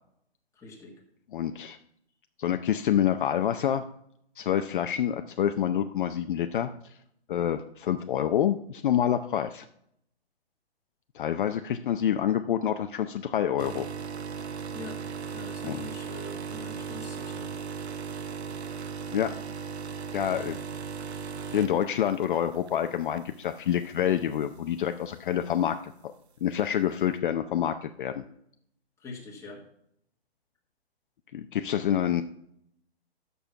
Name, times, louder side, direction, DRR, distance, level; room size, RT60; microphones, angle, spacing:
voice 1, 0.5-1.0 14.7-15.0 15.3-17.5 29.0-29.6, left 3 dB, 10° left, -2 dB, 1.7 m, -44 dB
voice 2, 1.3-1.8 2.4-3.8 4.4-6.7 7.3-9.7 11.1-13.9 15.6-15.9 19.1-19.3 20.1-20.6 21.5-26.1 26.4-28.2 31.3-32.2, left 10 dB, 50° left, 8 dB, 0.6 m, -27 dB
sound 1, 13.6-22.8 23.2-23.4 24.3-24.4, right 6 dB, 80° right, 0.8 m, -37 dB
8.7 x 6.9 x 5.6 m, 0.73 s
hypercardioid pair, 140°, 32 cm